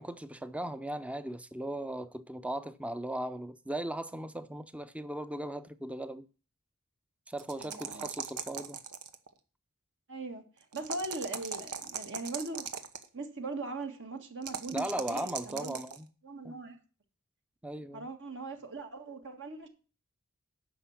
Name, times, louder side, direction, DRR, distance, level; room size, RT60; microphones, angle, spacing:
voice 1, 0.0-6.2 7.3-8.8 14.7-16.1 16.4-16.5 17.6-18.1, right 1 dB, 5° right, 0.6 m, -38 dB
sound 1, 7.4-9.3 10.7-13.1 14.4-16.0, right 7 dB, 90° right, 1.1 m, -39 dB
voice 2, 7.6-8.1 10.1-12.7 13.1-15.8 16.2-16.8 17.9-19.7, right 3 dB, 60° right, 1.8 m, -40 dB
10.0 x 6.1 x 7.2 m
head